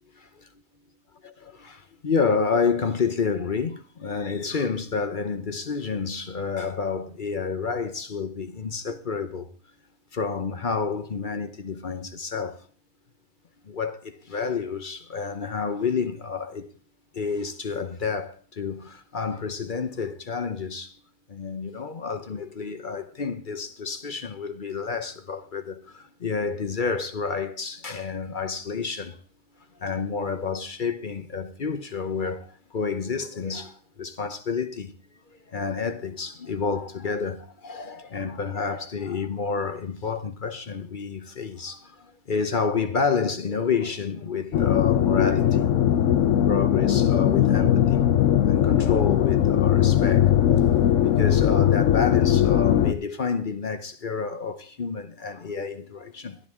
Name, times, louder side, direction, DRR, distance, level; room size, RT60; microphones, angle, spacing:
voice 1, 1.5-9.5 10.1-12.7 13.6-16.7 17.1-21.0 21.3-29.2 29.8-35.0 35.3-45.8 46.5-48.1 48.5-50.3 51.0-56.4, left 5 dB, 45° left, 0.9 m, -29 dB
sound 1, 44.5-52.9, left 10 dB, 70° left, 1.1 m, -20 dB
12.0 x 12.0 x 3.6 m
omnidirectional pair, 1.4 m